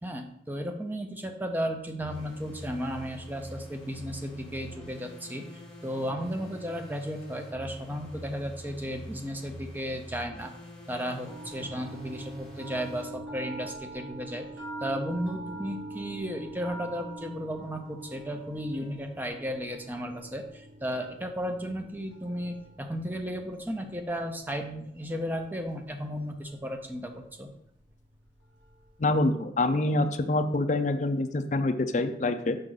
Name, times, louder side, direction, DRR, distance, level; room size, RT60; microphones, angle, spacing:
voice 1, 0.0-10.5 10.9-14.5 14.8-27.5, equal, 10° right, 5 dB, 0.6 m, -34 dB
sound 1, 2.0-13.1, equal, 5° left, 1.5 m, -45 dB
sound 2, 11.2-29.2, right 2 dB, 85° right, 1.6 m, -45 dB
voice 2, 29.0-32.6, left 2 dB, 40° left, 6 dB, 0.4 m, -26 dB
6.2 x 5.4 x 3.9 m, 0.76 s
head